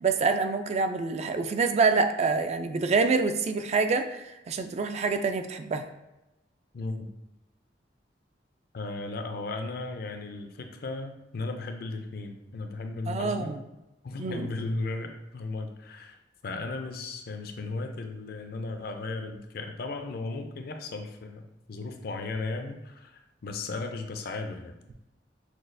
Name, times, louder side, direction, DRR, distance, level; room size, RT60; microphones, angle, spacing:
voice 1, 0.0-5.9 13.1-13.6 14.2-14.5, right 4 dB, 35° right, 7 dB, 0.3 m, -26 dB
voice 2, 6.7-7.1 8.7-13.6 14.0-24.7, left 3 dB, 55° left, 5 dB, 0.5 m, -36 dB
6.0 x 2.3 x 2.6 m, 0.95 s
head